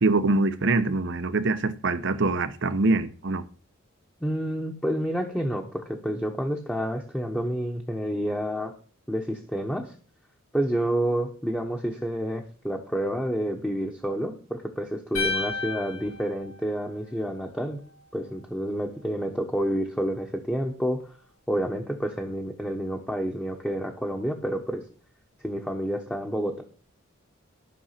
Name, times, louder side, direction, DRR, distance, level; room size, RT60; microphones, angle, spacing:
voice 1, 0.0-3.4, right 3 dB, 60° right, 0.9 m, -24 dB
voice 2, 4.2-8.7 9.1-9.9 10.5-17.8 18.1-21.1 21.5-24.8 25.4-26.6, equal, 5° left, 1.1 m, -29 dB
sound 1, 15.1-17.4, left 4 dB, 85° left, 7.4 m, -32 dB
12.5 x 6.2 x 5.8 m
head